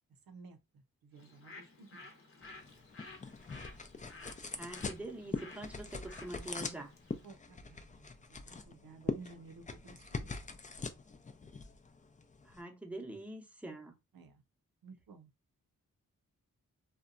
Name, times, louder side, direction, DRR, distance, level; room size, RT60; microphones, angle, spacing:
voice 1, 0.3-2.1 6.2-6.3 7.2-8.0 8.4-10.6 14.1-14.4 14.8-15.3, right 4 dB, 90° right, 0.6 m, -55 dB
Bird, 1.1-7.3, left 3 dB, 40° left, 0.8 m, -54 dB
sound 1, 2.4-12.6, left 4 dB, 25° left, 0.4 m, -43 dB
voice 2, 4.5-6.9 12.4-13.9, right 2 dB, 5° right, 0.7 m, -45 dB
2.7 x 2.2 x 2.4 m
cardioid pair, 65°, 34 cm